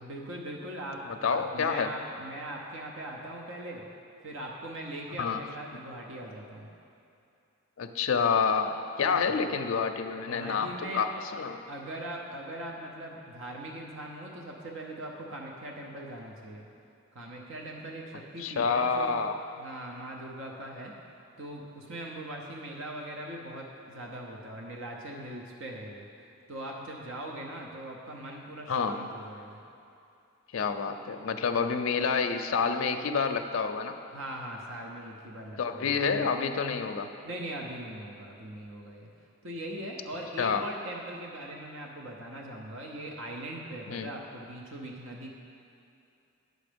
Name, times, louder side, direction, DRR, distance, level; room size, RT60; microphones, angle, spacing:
voice 1, 0.0-3.8 4.2-6.7 9.0-9.3 10.1-11.0 11.7-16.7 17.1-19.2 19.5-20.9 21.4-29.6 34.1-36.2 37.2-39.1 39.4-45.3, right 1 dB, 60° right, -1 dB, 0.8 m, -41 dB
voice 2, 1.1-1.9 5.2-5.4 7.8-11.6 18.4-19.3 28.7-29.0 30.5-34.0 35.6-37.1 40.4-40.6 43.9-44.1, left 5 dB, 65° left, 6 dB, 0.4 m, -28 dB
9.1 x 6.5 x 5.1 m, 2.6 s
head